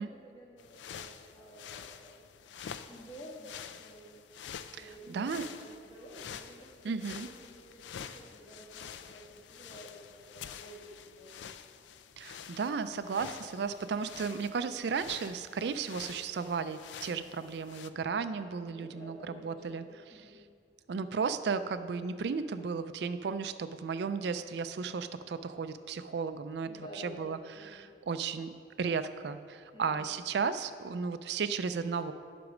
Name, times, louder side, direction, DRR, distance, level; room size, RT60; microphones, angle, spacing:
voice 1, 0.0-2.2 2.9-4.2 4.7-11.4 18.7-20.4 26.6-27.9 29.7-30.1, equal, 30° left, -4 dB, 1.8 m, -51 dB
sound 1, 0.6-17.9, left 8 dB, 90° left, 0.4 m, -48 dB
voice 2, 4.7-5.4 6.8-7.3 12.2-19.8 20.9-28.5 28.8-32.1, right 5 dB, 70° right, 11 dB, 0.4 m, -34 dB
9.4 x 6.1 x 5.0 m, 2.1 s
head